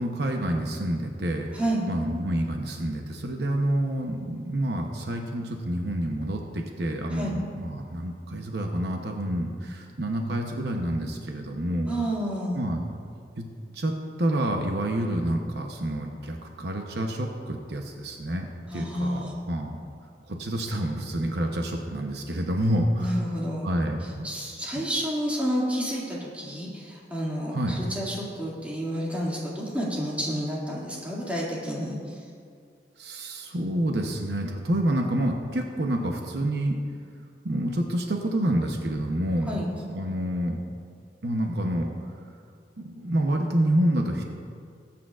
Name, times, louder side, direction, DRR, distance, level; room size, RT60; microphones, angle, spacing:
voice 1, 0.0-1.5 1.9-11.9 12.5-12.9 13.4-13.5 13.7-13.9 14.2-18.5 18.7-19.8 20.3-23.2 23.6-24.3 24.8-24.9 27.5-27.8 33.0-36.8 37.4-40.6 41.2-41.9 42.8-44.2, right 1 dB, 65° right, 2 dB, 0.9 m, -28 dB
voice 2, 1.5-1.9 7.1-7.4 11.9-12.6 18.7-19.4 23.0-23.7 24.2-32.2 39.5-39.7, equal, 10° right, -6 dB, 2.3 m, -30 dB
20.0 x 8.7 x 2.5 m, 2.3 s
head